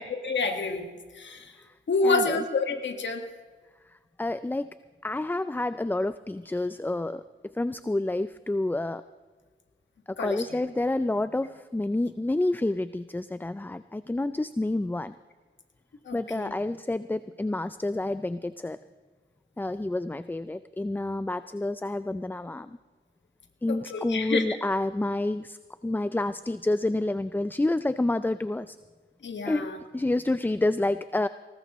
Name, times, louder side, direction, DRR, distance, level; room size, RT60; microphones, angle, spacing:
voice 1, 0.0-1.5 1.9-3.2 10.2-10.6 16.1-16.5 23.7-24.4 29.2-29.8, left 3 dB, 65° left, 5 dB, 1.6 m, -29 dB
voice 2, 2.0-2.4 4.2-4.7 5.0-9.0 10.1-15.1 16.1-18.8 19.6-22.8 23.6-25.6 25.8-28.8 29.5-31.3, left 2 dB, 10° left, 14 dB, 0.4 m, -29 dB
19.5 x 18.5 x 3.1 m, 1.4 s
cardioid pair, 70°, 20 cm